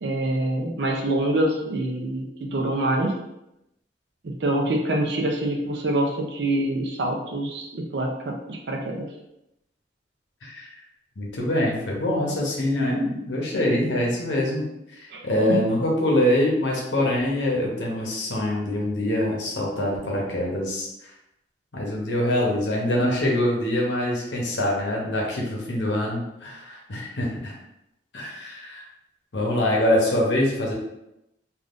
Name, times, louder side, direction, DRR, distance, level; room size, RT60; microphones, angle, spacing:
voice 1, 0.0-3.1 4.2-9.1 15.1-15.6, right 1 dB, 70° right, 0 dB, 0.5 m, -25 dB
voice 2, 11.2-14.7 15.0-21.1 21.7-27.5 28.1-28.8 29.3-30.7, left 1 dB, 85° left, -2 dB, 0.8 m, -24 dB
3.5 x 2.4 x 2.5 m, 0.87 s
head